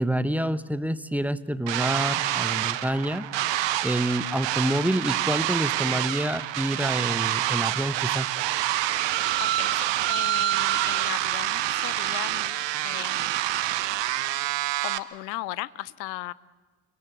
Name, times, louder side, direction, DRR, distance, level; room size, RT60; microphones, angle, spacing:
voice 1, 0.0-3.3 3.8-8.3, right 1 dB, 5° right, 14 dB, 1.1 m, -27 dB
sound 1, 1.7-15.0, right 14 dB, 60° right, 1.2 m, -27 dB
voice 2, 9.4-12.6 12.8-13.3 14.8-16.3, left 18 dB, 80° left, 21 dB, 0.7 m, -37 dB
30.0 x 16.5 x 8.5 m, 1.4 s
figure-of-eight pair, 45°, 50 cm